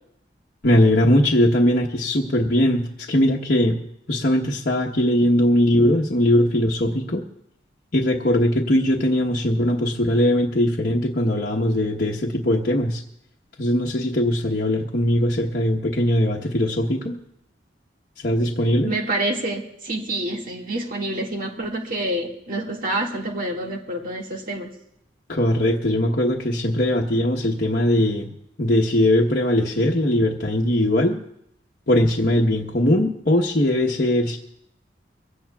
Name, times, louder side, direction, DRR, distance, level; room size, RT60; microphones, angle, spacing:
voice 1, 0.6-3.8 4.1-7.2 7.9-13.0 13.6-17.2 18.2-18.9 25.3-28.3 28.6-31.2 31.9-34.4, left 1 dB, 55° left, -2 dB, 1.1 m, -20 dB
voice 2, 18.8-24.7, right 1 dB, 50° right, 0 dB, 2.0 m, -27 dB
23.0 x 16.5 x 2.4 m, 0.76 s
head